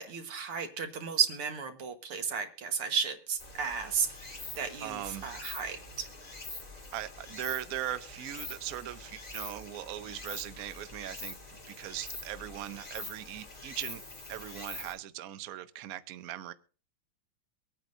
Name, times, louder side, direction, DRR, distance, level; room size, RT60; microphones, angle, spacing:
voice 1, 0.0-6.1, right 6 dB, 85° right, 2.3 m, -33 dB
Stream, 3.4-14.9, left 2 dB, 20° left, 1.9 m, -45 dB
voice 2, 4.8-5.3 6.9-11.4 11.7-14.0 14.3-16.5, right 12 dB, 65° right, 0.9 m, -39 dB
24.0 x 9.1 x 2.6 m
omnidirectional pair, 2.3 m